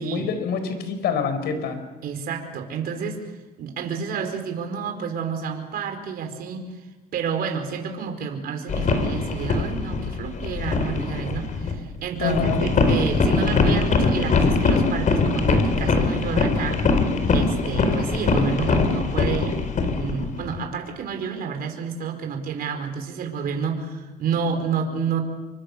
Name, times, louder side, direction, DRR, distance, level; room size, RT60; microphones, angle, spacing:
voice 1, 0.0-1.8 12.2-12.6, left 5 dB, 75° left, 9 dB, 4.7 m, -25 dB
voice 2, 2.0-6.7 7.1-19.6 19.9-25.2, right 6 dB, 60° right, 4 dB, 4.7 m, -30 dB
sound 1, 8.7-11.8 12.2-20.6, left 3 dB, 50° left, 4.2 m, -22 dB
27.5 x 24.5 x 6.8 m, 1.2 s
cardioid pair, 110°, 17 cm